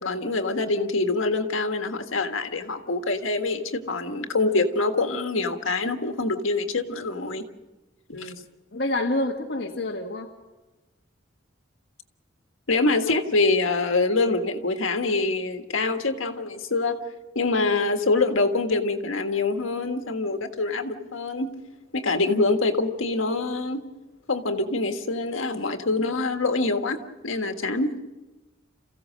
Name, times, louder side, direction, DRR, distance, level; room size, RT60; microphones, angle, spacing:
voice 1, 0.0-7.5 8.2-8.3 12.7-17.0 17.3-21.5 21.9-23.8 24.3-27.9, left 3 dB, 85° left, 6 dB, 1.7 m, -25 dB
voice 2, 8.7-10.3, left 1 dB, 60° left, -1 dB, 1.5 m, -28 dB
28.5 x 15.5 x 6.4 m, 1.1 s
head